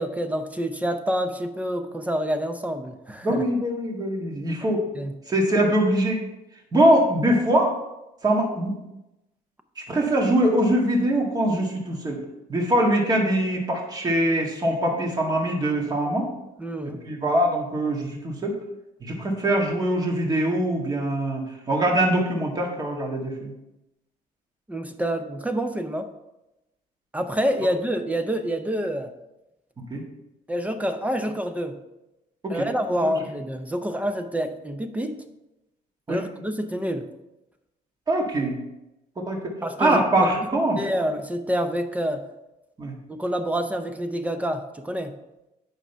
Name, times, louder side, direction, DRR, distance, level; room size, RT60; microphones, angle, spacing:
voice 1, 0.0-3.4 4.9-5.1 6.8-6.9 16.6-17.0 24.7-26.1 27.1-29.1 30.5-31.8 32.5-35.2 36.1-37.1 39.6-40.3 40.8-42.2 43.1-45.1, equal, 10° right, 7 dB, 0.6 m, -27 dB
voice 2, 3.2-4.8 5.3-6.2 6.7-7.7 8.2-8.8 9.8-12.2 12.5-16.3 17.0-18.6 19.0-23.5 29.9-30.0 32.4-32.7 33.0-33.1 36.1-36.2 38.1-38.6 39.2-39.5 39.8-40.8 42.8-42.9, right 1 dB, 25° right, 0 dB, 1.7 m, -23 dB
8.8 x 5.6 x 4.5 m, 0.93 s
cardioid pair, 135°, 16 cm